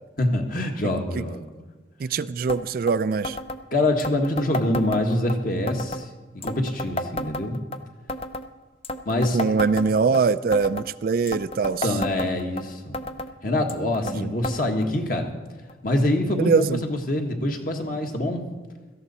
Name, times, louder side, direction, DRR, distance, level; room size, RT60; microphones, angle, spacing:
voice 1, 0.2-1.4 3.7-6.1 6.3-7.6 9.1-9.4 11.8-13.0 13.4-15.3 15.8-18.5, left 1 dB, 50° left, 3 dB, 1.6 m, -25 dB
voice 2, 2.0-3.4 9.3-11.8 14.1-14.3 16.4-16.8, right 5 dB, 50° right, 14 dB, 0.4 m, -22 dB
sound 1, 2.5-2.6 2.9-3.0 3.2-3.6 4.0-5.4 5.7-6.0 6.4-7.8 8.1-8.5 8.8-10.2 10.5-10.9 11.3-12.6 12.9-13.3 13.7-14.2 14.4-14.6 14.8-14.9 15.7-15.8 16.6-16.7, left 1 dB, 30° left, 0.6 m, -31 dB
17.5 x 13.5 x 4.2 m, 1.3 s
head